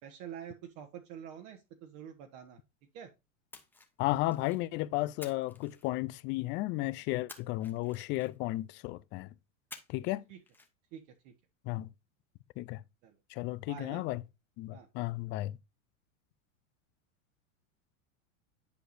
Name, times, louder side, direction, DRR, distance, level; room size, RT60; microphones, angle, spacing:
voice 1, 0.0-2.6 2.9-3.1 10.3-10.4 10.9-11.3 13.0-13.2 13.7-14.0 14.7-14.9, right 9 dB, 55° right, 1.4 m, -47 dB
Splash splatter, 3.5-4.7 5.2-6.4 7.3-8.6 9.7-10.2 10.5-10.7, left 3 dB, 5° left, 1.2 m, -52 dB
voice 2, 4.0-9.3 9.9-10.2 11.7-11.9 12.6-12.8 13.3-14.2 14.6-15.6, left 18 dB, 30° left, 0.4 m, -34 dB
10.5 x 4.8 x 2.6 m
supercardioid pair, 130°, 41 cm